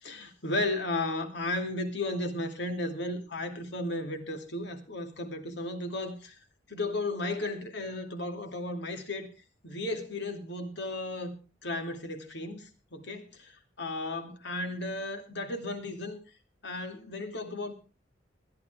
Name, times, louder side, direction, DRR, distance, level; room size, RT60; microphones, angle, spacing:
voice 1, 0.0-6.4 6.7-9.3 9.6-11.3 11.6-13.3 13.8-16.2 16.6-17.7, left 2 dB, 65° left, 2.4 m, -34 dB
21.0 x 12.5 x 3.5 m
head